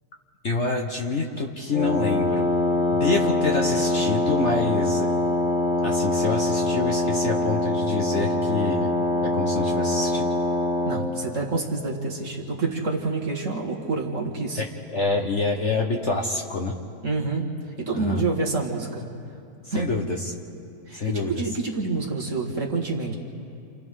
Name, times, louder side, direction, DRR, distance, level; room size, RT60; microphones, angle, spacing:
voice 1, 0.4-2.5 2.9-5.1 5.8-8.9 9.2-10.3 14.6-16.8 17.9-18.2 19.6-20.3 20.9-21.4, left 3 dB, 45° left, 1 dB, 1.3 m, -27 dB
Wind instrument woodwind instrument, 1.7-11.1, left 1 dB, 80° left, 3.3 m, -24 dB
voice 2, 10.9-14.6 17.0-17.5 17.8-19.1 19.7-19.9 20.9-23.2, right 3 dB, 45° right, -1 dB, 2.2 m, -27 dB
29.5 x 28.0 x 3.8 m, 2.6 s
omnidirectional pair, 1.9 m